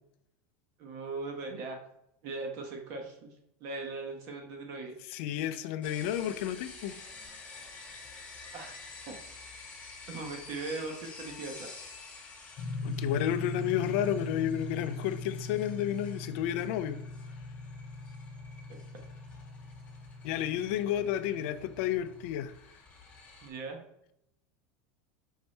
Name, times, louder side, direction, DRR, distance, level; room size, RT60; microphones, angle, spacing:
voice 1, 0.8-1.8 2.2-3.3 3.6-4.9 8.5-8.8 9.0-9.2 10.1-11.7 23.4-23.8, right 3 dB, 50° right, 2 dB, 1.1 m, -39 dB
voice 2, 5.1-6.9 12.8-17.0 20.2-22.5, left 11 dB, 65° left, 11 dB, 0.4 m, -31 dB
sound 1, 5.8-23.5, left 4 dB, 20° left, 1.5 m, -50 dB
sound 2, 12.6-22.3, left 2 dB, 40° left, 0.9 m, -41 dB
5.5 x 2.7 x 3.2 m, 0.77 s
supercardioid pair, 140°, 7 cm